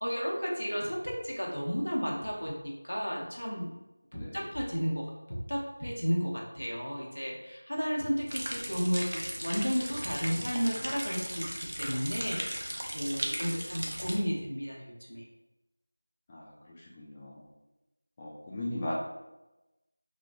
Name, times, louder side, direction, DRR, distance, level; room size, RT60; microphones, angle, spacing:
voice 1, 0.0-3.7 4.1-15.2, equal, 85° left, -2 dB, 0.8 m, -33 dB
voice 2, 4.1-4.5 16.3-17.5 18.2-18.9, left 1 dB, 15° left, -6 dB, 0.4 m, -39 dB
sound 1, 8.3-14.1, equal, 70° right, 0.5 m, -37 dB
3.1 x 2.1 x 2.5 m, 0.99 s
figure-of-eight pair, 170°, 0 cm